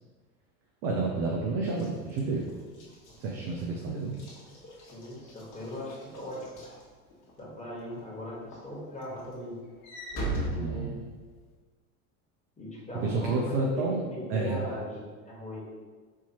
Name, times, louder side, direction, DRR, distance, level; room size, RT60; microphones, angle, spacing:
voice 1, 0.8-2.5 3.2-4.2 10.6-10.9 13.0-14.6, right 3 dB, 50° right, -1 dB, 0.7 m, -30 dB
Walk footsteps / Slam, 1.7-7.4 7.9-8.2 8.5-11.5, right 2 dB, 45° left, 1.3 m, -39 dB
voice 2, 4.8-6.4 7.4-9.6 10.1-11.0 12.6-15.7, left 1 dB, 15° left, -5 dB, 1.5 m, -39 dB
4.6 x 2.8 x 2.9 m, 1.4 s
hypercardioid pair, 75°, 43 cm